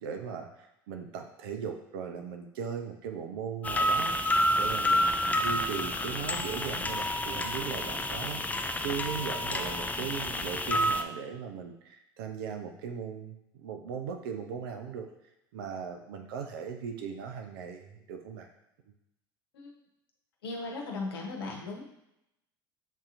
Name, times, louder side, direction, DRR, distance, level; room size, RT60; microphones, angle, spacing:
voice 1, 0.0-15.1 15.5-18.5, right 7 dB, 70° right, 5 dB, 0.5 m, -38 dB
sound 1, 3.6-11.0, left 1 dB, 10° left, 0.4 m, -29 dB
voice 2, 20.4-21.8, left 3 dB, 80° left, 0 dB, 1.0 m, -37 dB
7.1 x 2.7 x 2.5 m, 0.84 s
hypercardioid pair, 70°, 12 cm